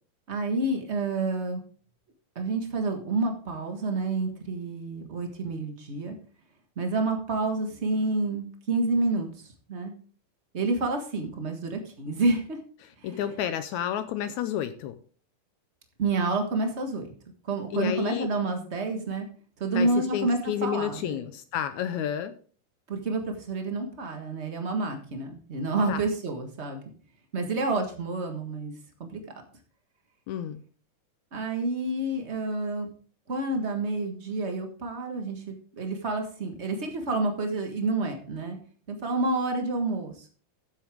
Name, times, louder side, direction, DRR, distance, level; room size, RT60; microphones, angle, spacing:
voice 1, 0.3-1.6 2.3-6.2 6.8-9.9 10.5-12.6 13.0-13.2 16.0-17.1 17.4-19.3 19.6-21.2 22.9-26.8 27.3-29.2 31.3-32.9 33.3-38.6 38.9-40.3, right 2 dB, 50° right, 4 dB, 0.8 m, -29 dB
voice 2, 13.0-15.0 17.7-18.3 19.7-22.3 25.9-26.0 30.3-30.6, left 10 dB, 75° left, 11 dB, 1.8 m, -30 dB
13.5 x 7.8 x 3.5 m, 0.42 s
omnidirectional pair, 3.8 m